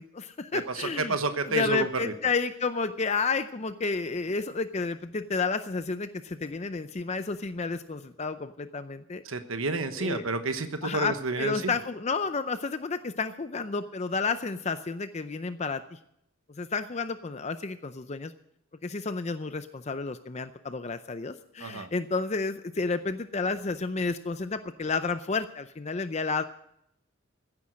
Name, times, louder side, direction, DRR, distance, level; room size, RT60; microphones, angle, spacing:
voice 1, 0.0-1.2 1.4-9.2 10.0-10.3 10.8-16.0 16.6-18.3 18.8-26.4, left 4 dB, 35° left, 10 dB, 0.5 m, -31 dB
voice 2, 0.5-2.1 9.2-11.7 21.6-21.9, right 3 dB, 80° right, 9 dB, 1.2 m, -30 dB
16.0 x 9.7 x 6.4 m, 0.74 s
head